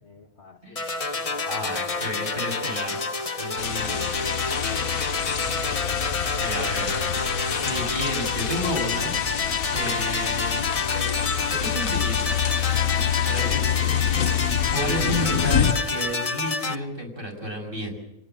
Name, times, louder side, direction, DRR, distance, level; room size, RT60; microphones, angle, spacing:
voice 1, 0.0-1.8 3.6-4.6, left 4 dB, 35° left, 4 dB, 1.8 m, -48 dB
sound 1, 0.8-16.8, left 4 dB, 70° left, 0.3 m, -28 dB
voice 2, 1.5-3.0 3.4-4.1 6.4-7.0 7.4-9.1 9.7-10.6 10.9-11.1 11.5-12.4 13.2-13.9 14.7-17.9, equal, 25° right, 2 dB, 6.6 m, -31 dB
sound 2, 3.6-15.7, left 8 dB, 50° left, 1.2 m, -27 dB
26.0 x 19.0 x 7.7 m, 0.84 s
omnidirectional pair, 2.3 m